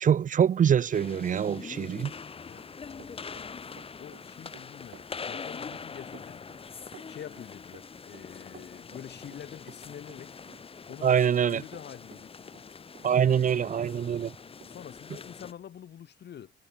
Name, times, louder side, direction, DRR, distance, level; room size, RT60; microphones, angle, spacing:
voice 1, 0.0-2.1 11.0-11.6 13.0-14.3, right 8 dB, 45° right, 0.6 m, -24 dB
sound 1, 0.9-15.5, left 5 dB, 30° left, 1.0 m, -43 dB
voice 2, 2.5-6.5 7.1-10.4 10.9-12.5 13.1-13.8 14.6-16.5, left 9 dB, 60° left, 4.1 m, -47 dB
Run, 2.6-13.5 13.8-14.7, right 10 dB, 65° right, 3.3 m, -54 dB
cardioid pair, 115°, 19 cm